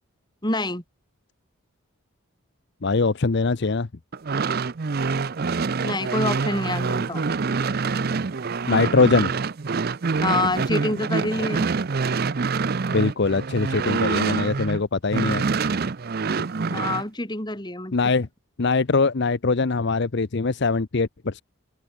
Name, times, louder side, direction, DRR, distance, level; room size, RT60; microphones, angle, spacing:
voice 1, 0.4-0.8 5.8-7.3 10.2-11.7 16.7-18.0, left 2 dB, 20° left, 3.9 m, -26 dB
voice 2, 2.8-3.9 8.7-9.3 12.9-15.4 17.9-18.3 18.6-21.4, left 4 dB, 55° left, 0.7 m, -22 dB
sound 1, 4.1-14.8 15.1-17.0, right 4 dB, 45° right, 0.5 m, -26 dB
open air
head